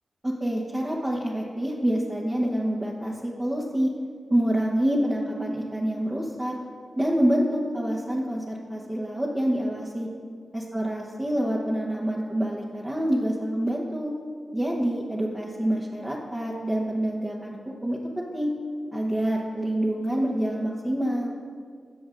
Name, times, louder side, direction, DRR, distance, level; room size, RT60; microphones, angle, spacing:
voice 1, 0.2-3.9 4.3-6.5 7.0-10.1 10.5-14.1 14.5-18.5 18.9-21.3, right 1 dB, 25° right, -5 dB, 1.1 m, -27 dB
13.5 x 7.1 x 2.6 m, 2.1 s
cardioid pair, 55°, 0 cm